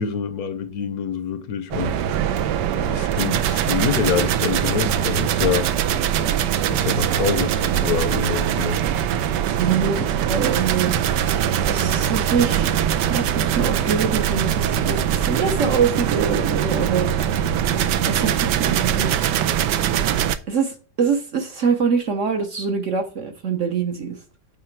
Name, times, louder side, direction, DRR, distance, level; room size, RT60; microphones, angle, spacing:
voice 1, 0.0-2.0 2.8-5.7 6.7-8.8 10.0-10.1, left 7 dB, 65° left, 1.1 m, -26 dB
sound 1, 1.7-20.4, right 9 dB, 80° right, 1.2 m, -22 dB
voice 2, 9.6-10.9 11.7-12.7 13.1-17.1 18.1-19.4 20.5-24.2, right 6 dB, 55° right, 1.0 m, -24 dB
8.8 x 4.2 x 4.6 m
omnidirectional pair, 1.9 m